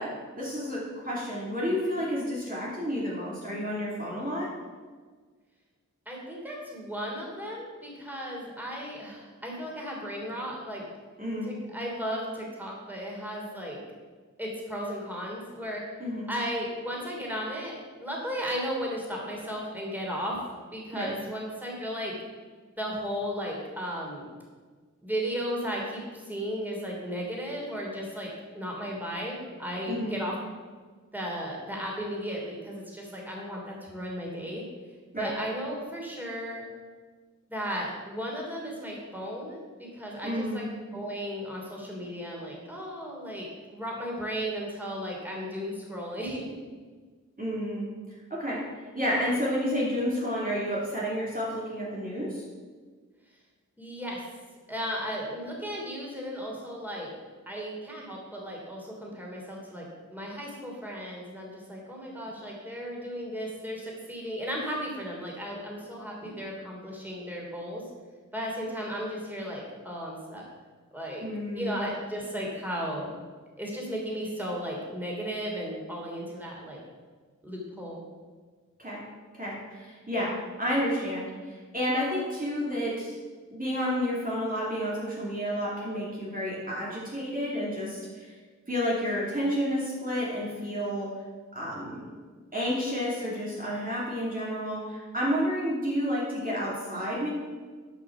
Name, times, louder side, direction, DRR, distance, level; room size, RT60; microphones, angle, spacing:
voice 1, 0.0-4.5 11.2-11.5 16.0-16.3 20.9-21.1 29.9-30.2 35.1-35.3 40.2-40.6 47.4-47.9 48.3-52.4 71.2-71.9 78.8-79.0 79.3-83.2 83.5-88.3 88.7-91.2 91.5-92.1 92.5-97.3, equal, 25° right, -6 dB, 2.9 m, -30 dB
voice 2, 6.0-10.8 11.4-13.8 14.4-15.8 16.3-20.4 20.7-22.1 22.8-24.2 25.0-28.3 28.5-30.3 31.1-34.6 35.2-36.6 37.5-40.7 40.9-46.5 53.8-54.2 54.7-57.1 57.5-67.8 68.3-70.5 70.9-71.2 71.5-73.1 73.6-76.8 77.4-78.0, equal, 5° right, -2 dB, 3.2 m, -35 dB
11.0 x 6.0 x 6.1 m, 1.5 s
wide cardioid pair, 65°, 31 cm